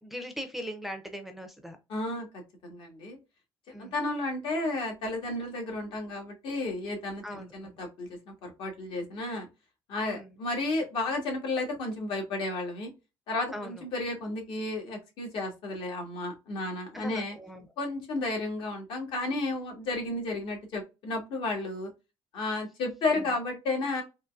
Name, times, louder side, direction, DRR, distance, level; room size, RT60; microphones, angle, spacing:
voice 1, 0.0-1.8 3.7-3.9 7.2-7.8 10.0-10.3 13.5-13.8 16.9-17.7 23.1-23.3, equal, ahead, 5 dB, 0.4 m, -40 dB
voice 2, 1.9-2.3 2.6-3.2 3.7-9.5 9.9-12.9 13.3-17.4 17.8-21.9 22.3-24.0, left 2 dB, 70° left, 2 dB, 1.4 m, -32 dB
3.7 x 2.4 x 2.3 m, 0.26 s
cardioid pair, 160°, 9 cm